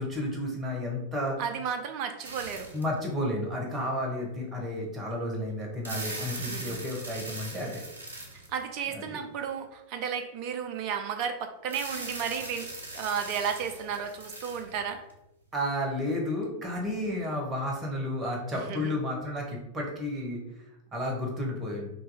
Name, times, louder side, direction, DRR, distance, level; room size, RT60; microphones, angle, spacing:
voice 1, 0.0-1.4 2.7-7.8 8.9-9.2 15.5-20.4 20.9-21.9, left 1 dB, 20° right, -1 dB, 1.2 m, -32 dB
voice 2, 1.4-2.7 6.4-6.8 8.5-12.7 12.9-15.0 18.5-18.9, right 7 dB, 45° right, 6 dB, 0.5 m, -33 dB
sound 1, 2.2-3.0 3.7-3.8 5.6-8.8 11.7-15.1, right 2 dB, 75° right, 0.8 m, -40 dB
3.0 x 2.8 x 4.0 m, 0.87 s
figure-of-eight pair, 90°, 0 cm